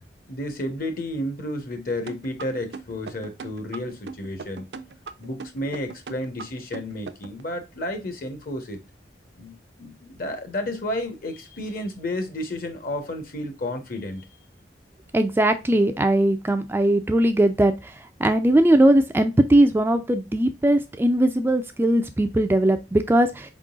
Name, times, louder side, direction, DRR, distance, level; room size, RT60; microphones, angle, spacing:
voice 1, 0.3-4.7 5.2-8.8 9.4-14.3, left 1 dB, 50° left, 1.0 m, -31 dB
sound 1, 2.1-7.4, right 4 dB, 70° right, 0.5 m, -38 dB
voice 2, 15.1-17.9 18.2-23.5, right 1 dB, 10° right, 0.3 m, -19 dB
4.6 x 3.7 x 2.4 m
head